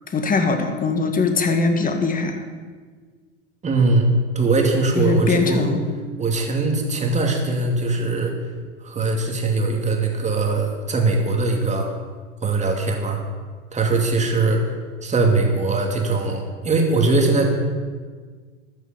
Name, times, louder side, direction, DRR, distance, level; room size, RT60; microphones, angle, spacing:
voice 1, 0.1-2.4 5.0-5.8, left 3 dB, 20° left, 6 dB, 1.7 m, -21 dB
voice 2, 3.6-5.7 6.2-8.3 8.8-11.9 12.4-13.2 13.7-14.6 15.0-17.5, right 3 dB, 20° right, 1 dB, 2.6 m, -21 dB
13.5 x 6.4 x 8.1 m, 1.5 s
hypercardioid pair, 95°, 37 cm